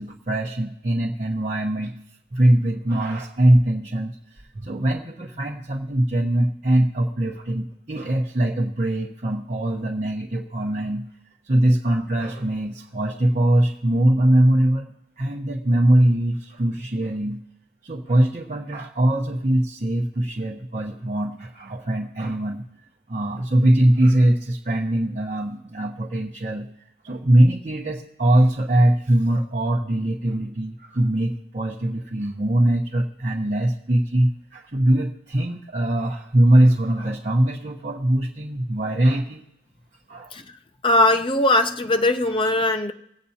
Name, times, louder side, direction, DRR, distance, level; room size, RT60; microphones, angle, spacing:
voice 1, 0.0-1.9 2.3-11.0 11.4-14.9 15.2-17.4 17.8-22.7 23.1-26.7 27.0-39.4 40.1-40.3, right 1 dB, 40° right, 0.9 m, -21 dB
voice 2, 40.8-42.9, left 1 dB, 25° left, 0.6 m, -20 dB
22.5 x 8.3 x 2.8 m
head